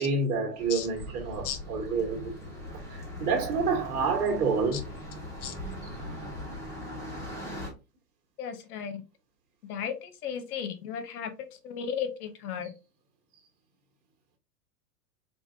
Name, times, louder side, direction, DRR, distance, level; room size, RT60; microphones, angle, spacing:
voice 1, 0.0-2.3 2.9-4.8 5.8-5.9, right 4 dB, 75° right, 1.4 m, -28 dB
sound 1, 0.6-7.7, left 1 dB, 5° left, 1.0 m, -40 dB
voice 2, 8.4-9.0 9.7-11.3 11.6-12.7, left 8 dB, 70° left, 0.9 m, -35 dB
4.6 x 2.4 x 2.6 m
hypercardioid pair, 145°, 47 cm